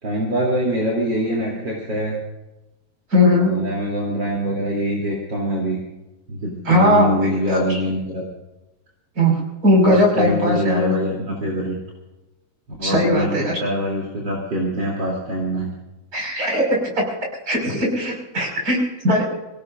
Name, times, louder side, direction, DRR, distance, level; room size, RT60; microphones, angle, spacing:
voice 1, 0.0-2.2 3.3-5.8 6.3-8.2 9.8-11.7 12.8-13.3 13.6-15.7, equal, 70° right, -4 dB, 3.9 m, -24 dB
voice 2, 3.1-3.5 6.6-7.8 9.2-9.3 9.6-11.0 12.8-13.6 16.1-16.8 17.5-18.8 19.0-19.2, left 1 dB, 50° right, -1 dB, 6.1 m, -18 dB
24.5 x 18.0 x 2.6 m, 1.0 s
omnidirectional pair, 2.0 m